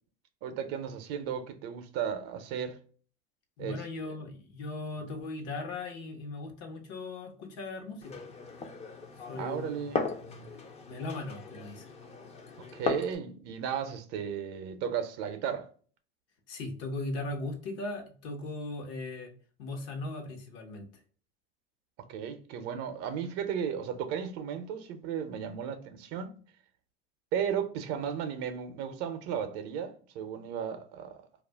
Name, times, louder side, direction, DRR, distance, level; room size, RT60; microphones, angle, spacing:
voice 1, 0.4-2.8 3.6-3.8 9.3-10.0 12.7-15.7 22.1-26.4 27.3-31.2, right 8 dB, 55° right, 0.6 m, -35 dB
voice 2, 3.6-8.2 9.3-9.8 10.2-10.5 10.9-11.9 16.5-19.3 19.6-20.9, left 2 dB, 55° left, 0.9 m, -38 dB
Glass, 8.0-13.1, left 4 dB, 20° left, 0.5 m, -37 dB
2.4 x 2.1 x 3.3 m
hypercardioid pair, 100°, 30 cm